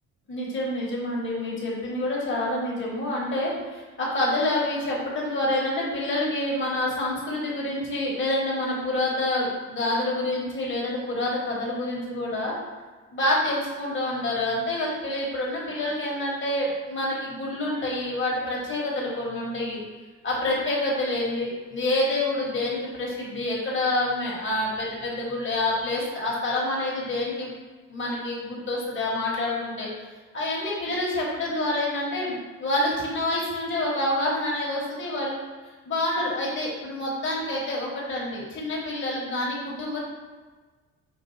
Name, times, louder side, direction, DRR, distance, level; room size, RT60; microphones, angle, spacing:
voice 1, 0.3-12.5 13.1-19.8 20.2-27.5 27.9-29.9 30.3-35.4 35.8-40.0, left 1 dB, 40° left, -4 dB, 1.4 m, -27 dB
5.3 x 2.4 x 4.1 m, 1.3 s
cardioid pair, 90°, 30 cm